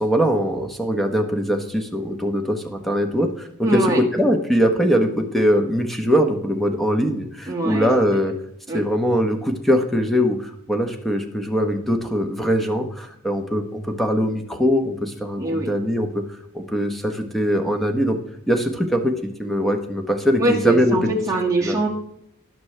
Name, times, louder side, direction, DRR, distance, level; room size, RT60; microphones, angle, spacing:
voice 1, 0.0-8.3 8.7-16.2 16.5-18.2 18.5-21.1 21.6-21.8, equal, ahead, 5 dB, 1.0 m, -21 dB
voice 2, 3.6-4.0 7.5-7.9 8.7-8.8 15.4-15.7 20.4-21.9, right 2 dB, 15° right, -2 dB, 1.9 m, -22 dB
18.0 x 6.1 x 3.3 m, 0.75 s
head